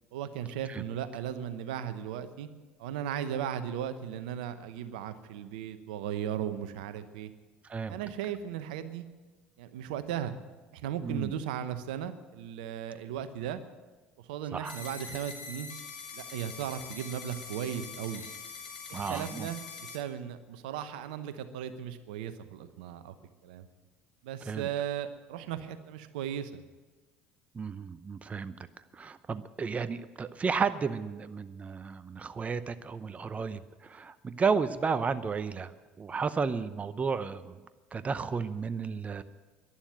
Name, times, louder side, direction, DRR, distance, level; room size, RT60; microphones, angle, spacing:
voice 1, 0.1-2.5 2.8-7.3 7.9-9.0 9.6-10.3 10.7-13.6 14.3-15.7 16.1-18.2 18.9-23.1 23.4-23.7 24.2-26.6, right 9 dB, 80° right, 11 dB, 0.9 m, -36 dB
voice 2, 7.7-8.0 11.0-11.3 14.5-14.8 18.9-19.5 24.5-24.7 27.5-28.6 28.9-37.6 37.9-39.2, right 5 dB, 30° right, 13 dB, 0.7 m, -33 dB
sound 1, 14.6-20.0, left 5 dB, 85° left, 2.1 m, -44 dB
11.5 x 11.5 x 9.1 m, 1.3 s
hypercardioid pair, 65°, 5 cm